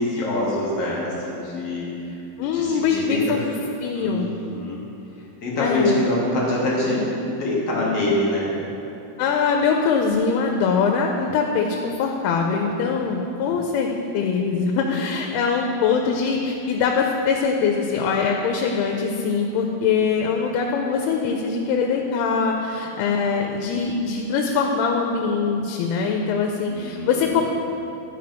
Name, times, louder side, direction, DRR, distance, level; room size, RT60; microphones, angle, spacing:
voice 1, 0.0-2.2 2.5-3.4 3.9-4.2 4.5-4.8 5.4-8.5 12.9-13.0 13.4-13.5 26.7-27.1, left 1 dB, 60° left, -5 dB, 1.6 m, -25 dB
voice 2, 2.4-3.4 3.8-4.3 5.6-6.0 9.2-27.4, left 5 dB, 90° left, 2 dB, 2.6 m, -22 dB
12.0 x 5.0 x 5.1 m, 2.9 s
omnidirectional pair, 4.5 m